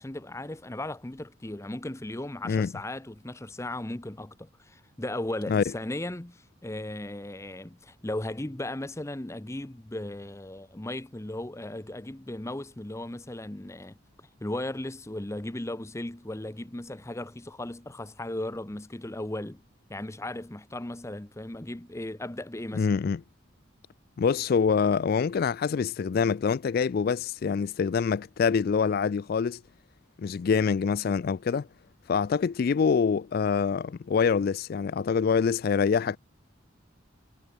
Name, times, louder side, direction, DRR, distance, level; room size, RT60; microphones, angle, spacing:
voice 1, 0.0-13.9 14.4-19.6 19.9-22.9, left 1 dB, 15° left, 0.7 m, -36 dB
voice 2, 22.7-23.2 24.2-29.6 30.2-31.7 32.1-36.2, left 6 dB, 50° left, 0.3 m, -25 dB
head